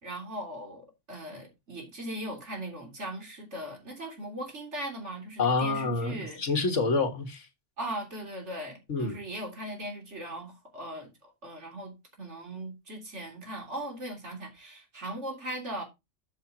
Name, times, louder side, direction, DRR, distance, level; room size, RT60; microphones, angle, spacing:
voice 1, 0.0-6.4 7.8-11.9 12.2-15.8, right 1 dB, 70° right, 3.5 m, -39 dB
voice 2, 5.4-7.5 8.9-9.2, left 3 dB, 85° left, 1.9 m, -27 dB
13.5 x 5.6 x 2.9 m
omnidirectional pair, 1.2 m